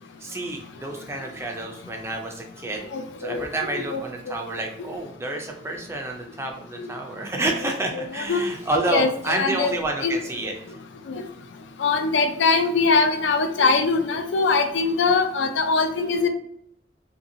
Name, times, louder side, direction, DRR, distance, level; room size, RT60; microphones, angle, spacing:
voice 1, 0.2-2.9 3.2-10.5, right 2 dB, 15° right, 2 dB, 0.4 m, -29 dB
voice 2, 2.9-3.4 3.7-4.0 6.8-6.9 7.9-8.4 8.9-9.7 10.0-10.1 11.1-11.2 11.8-16.3, left 4 dB, 85° left, 7 dB, 0.4 m, -22 dB
2.7 x 2.7 x 2.6 m, 0.71 s
head